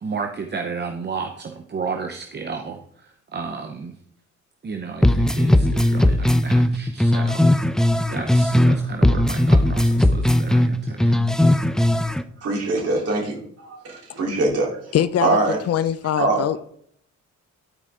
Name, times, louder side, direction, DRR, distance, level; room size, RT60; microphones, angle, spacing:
voice 1, 0.0-4.0 4.6-7.8 8.1-11.3, right 5 dB, 35° right, 4 dB, 0.9 m, -32 dB
sound 1, 5.0-8.8 9.0-12.2, left 1 dB, ahead, 0.5 m, -18 dB
voice 2, 12.4-14.8 15.2-15.6 16.2-16.4, right 2 dB, 55° right, -2 dB, 3.5 m, -23 dB
voice 3, 14.9-15.4 15.7-16.6, left 10 dB, 55° left, 15 dB, 0.6 m, -22 dB
12.0 x 4.9 x 3.6 m, 0.65 s
cardioid pair, 90°, 30 cm